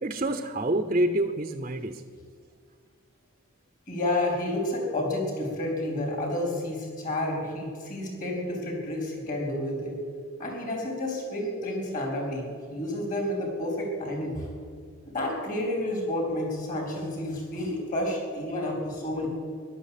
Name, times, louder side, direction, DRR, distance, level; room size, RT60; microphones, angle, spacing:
voice 1, 0.0-2.0, right 1 dB, 30° right, 8 dB, 0.6 m, -27 dB
voice 2, 3.9-10.0 10.4-14.5 15.1-19.3, left 1 dB, 40° left, 1 dB, 4.0 m, -30 dB
14.5 x 11.5 x 8.4 m, 2.1 s
head